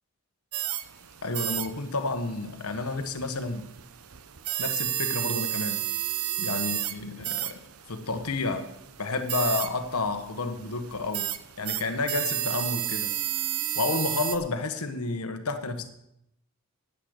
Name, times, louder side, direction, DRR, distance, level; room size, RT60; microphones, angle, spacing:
sound 1, 0.5-14.4, right 12 dB, 75° right, 0.8 m, -33 dB
voice 1, 1.2-3.7 4.6-5.8 6.1-7.6 7.9-8.7 9.0-11.3 11.6-13.1 13.7-15.9, left 3 dB, 90° left, 8 dB, 1.3 m, -30 dB
10.5 x 9.5 x 6.4 m, 0.79 s
head